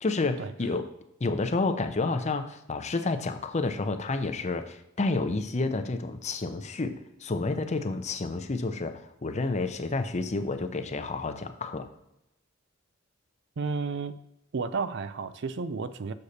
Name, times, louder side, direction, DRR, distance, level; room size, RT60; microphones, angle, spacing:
voice 1, 0.0-0.9 1.2-11.9, left 3 dB, 35° left, 9 dB, 0.6 m, -30 dB
voice 2, 13.6-14.2 14.5-16.1, right 4 dB, 60° right, 13 dB, 0.5 m, -32 dB
6.6 x 6.5 x 4.2 m, 0.84 s
head